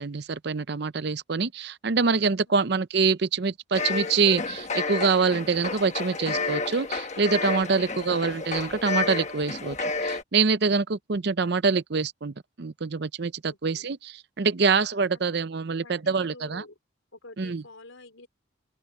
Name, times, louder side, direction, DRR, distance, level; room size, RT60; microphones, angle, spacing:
voice 1, 0.0-9.8 10.0-16.6 17.4-17.6, right 4 dB, 55° right, 0.6 m, -25 dB
sound 1, 3.7-10.2, left 4 dB, 35° left, 1.1 m, -31 dB
voice 2, 13.5-13.9 15.1-15.4 15.7-16.8 17.1-18.3, left 2 dB, 85° left, 4.3 m, -49 dB
open air
head